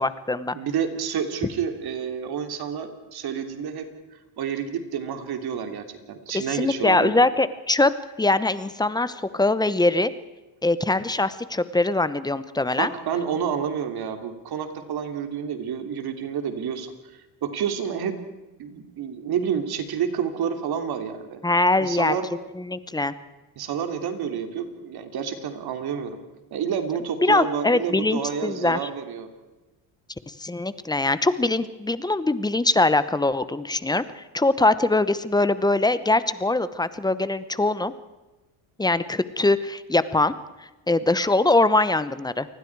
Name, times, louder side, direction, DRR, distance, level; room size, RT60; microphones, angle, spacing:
voice 1, 0.0-0.6 6.5-7.9 8.2-10.1 10.6-12.9 21.4-22.1 22.6-23.1 27.2-28.8 30.3-37.9 38.8-40.3 40.9-42.5, left 2 dB, 10° left, 14 dB, 0.9 m, -22 dB
voice 2, 0.5-3.9 4.4-7.1 12.8-16.9 17.4-18.2 18.6-21.4 21.8-22.3 23.6-26.2 26.5-29.3, right 7 dB, 50° right, 7 dB, 3.0 m, -29 dB
28.5 x 20.5 x 4.7 m, 1.1 s
cardioid pair, 125°, 49 cm